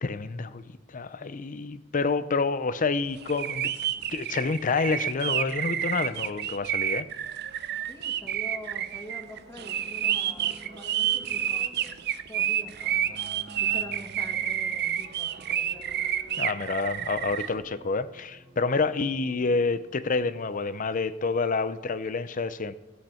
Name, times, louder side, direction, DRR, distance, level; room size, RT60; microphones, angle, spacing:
voice 1, 0.0-3.7 4.1-7.1 16.4-22.7, left 4 dB, 40° left, 14 dB, 0.6 m, -28 dB
sound 1, 3.2-17.5, right 10 dB, 55° right, 0.6 m, -29 dB
voice 2, 7.9-11.9 12.3-13.2 13.6-16.0, equal, 15° left, 2 dB, 1.7 m, -45 dB
sound 2, 9.2-21.1, right 1 dB, ahead, 1.2 m, -52 dB
16.5 x 8.4 x 4.4 m, 1.1 s
head